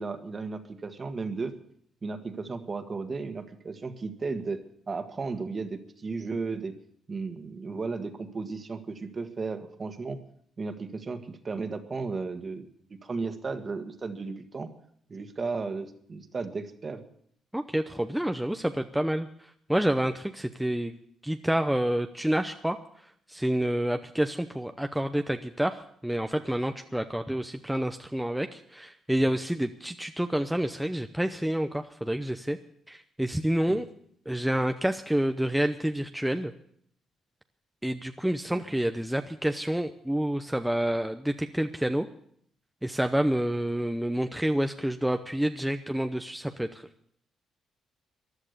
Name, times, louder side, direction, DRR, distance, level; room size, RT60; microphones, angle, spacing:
voice 1, 0.0-1.5 2.0-6.7 7.1-10.2 10.6-12.7 13.0-14.7 15.1-17.0 33.7-33.8 38.5-38.6, right 4 dB, 35° right, 8 dB, 1.6 m, -34 dB
voice 2, 17.5-21.0 21.2-22.8 23.3-32.6 32.9-33.9 34.3-36.5 37.8-42.1 42.8-46.9, right 1 dB, 5° right, 6 dB, 0.7 m, -28 dB
15.0 x 11.0 x 6.7 m, 0.66 s
cardioid pair, 90°, 0 cm